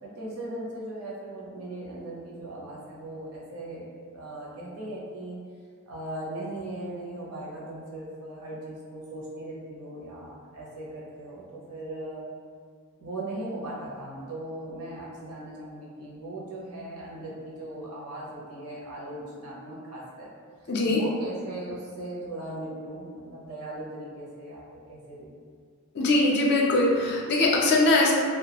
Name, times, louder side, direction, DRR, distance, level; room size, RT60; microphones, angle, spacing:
voice 1, 0.0-5.4 5.9-12.3 13.0-20.3 20.6-25.3, right 1 dB, 80° right, -5 dB, 0.7 m, -38 dB
voice 2, 20.7-21.0 25.9-28.1, left 2 dB, 50° left, -2 dB, 0.4 m, -21 dB
2.3 x 2.2 x 2.8 m, 2.1 s
head